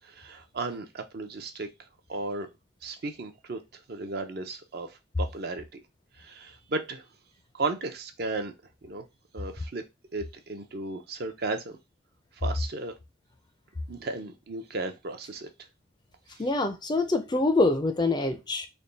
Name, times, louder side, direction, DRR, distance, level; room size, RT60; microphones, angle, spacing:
voice 1, 0.0-1.7 2.1-2.5 2.8-5.8 6.2-7.0 7.5-8.5 8.8-9.0 9.3-9.8 10.1-11.8 12.4-12.9 13.9-15.5 16.3-16.4, right 3 dB, 55° right, 0.6 m, -35 dB
voice 2, 16.4-18.7, left 2 dB, 20° left, 0.4 m, -25 dB
3.4 x 2.2 x 3.9 m
head